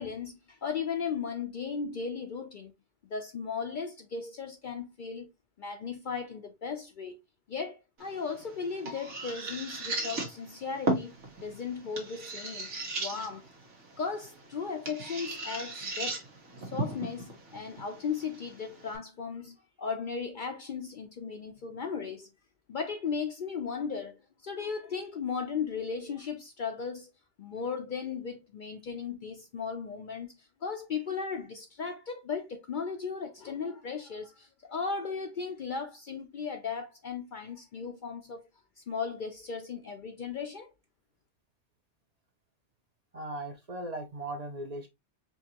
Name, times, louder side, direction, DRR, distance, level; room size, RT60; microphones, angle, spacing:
voice 1, 0.0-2.7 3.0-5.3 5.6-7.2 7.5-12.7 13.0-13.4 14.0-16.2 16.6-22.3 22.7-27.1 27.4-38.4 38.8-40.7, left 5 dB, 55° left, 0.6 m, -36 dB
sound 1, 8.0-19.0, right 2 dB, 80° right, 1.5 m, -37 dB
voice 2, 43.1-44.9, right 1 dB, 40° right, 0.7 m, -38 dB
4.6 x 2.6 x 2.9 m
omnidirectional pair, 1.2 m